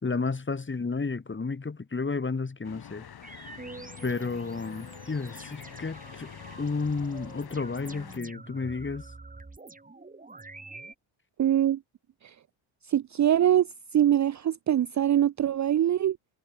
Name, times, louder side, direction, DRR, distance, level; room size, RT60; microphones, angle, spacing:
voice 1, 0.0-3.1 4.0-6.3 6.6-9.1, left 4 dB, 25° left, 3.1 m, -32 dB
sound 1, 2.6-8.2, left 8 dB, 50° left, 3.3 m, -46 dB
sound 2, 3.2-10.9, right 3 dB, 15° right, 2.4 m, -47 dB
voice 2, 11.4-11.8 12.2-12.3 12.9-13.7 13.9-16.2, right 11 dB, 40° right, 0.6 m, -23 dB
cardioid pair, 75°, 47 cm